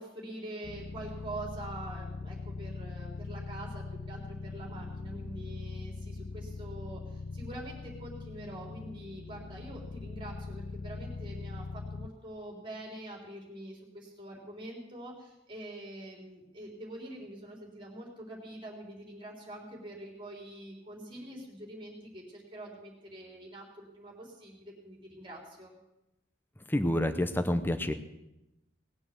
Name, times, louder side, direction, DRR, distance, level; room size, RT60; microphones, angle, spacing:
voice 1, 0.0-25.7, right 1 dB, 25° right, -1 dB, 3.7 m, -45 dB
sound 1, 0.6-12.1, left 3 dB, 45° left, 0.4 m, -41 dB
voice 2, 26.7-27.9, left 1 dB, 10° left, 9 dB, 0.7 m, -28 dB
19.0 x 7.2 x 7.6 m, 0.92 s
head